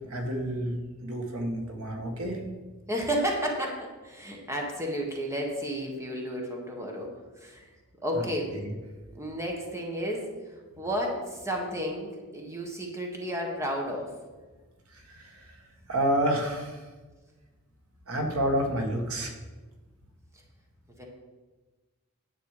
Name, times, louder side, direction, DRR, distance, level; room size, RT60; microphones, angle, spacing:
voice 1, 0.1-2.4 14.9-15.5 15.9-16.8 18.1-19.3, right 1 dB, 75° right, 3 dB, 1.6 m, -29 dB
voice 2, 2.9-7.1 7.4-7.7 8.0-8.5 9.1-14.1 21.0-21.1, equal, 15° right, 0 dB, 1.6 m, -32 dB
10.0 x 8.0 x 4.9 m, 1.3 s
head